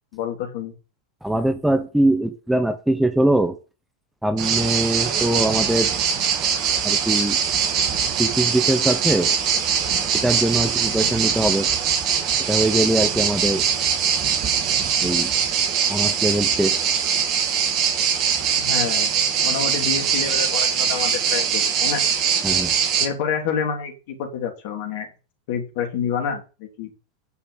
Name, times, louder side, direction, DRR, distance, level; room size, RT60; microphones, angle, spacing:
voice 1, 0.1-0.7 18.6-19.1 19.4-22.0 23.0-25.1 25.5-26.9, left 7 dB, 50° left, 3 dB, 3.1 m, -28 dB
voice 2, 1.2-3.6 4.2-5.9 6.8-7.4 8.2-9.3 10.2-11.7 12.5-13.7 15.0-15.3 15.9-16.8 22.4-22.7, right 1 dB, 5° right, 8 dB, 1.0 m, -22 dB
sound 1, 4.4-23.1, right 7 dB, 40° right, 2.3 m, -22 dB
9.8 x 5.7 x 6.6 m, 0.32 s
figure-of-eight pair, 90°, 0 cm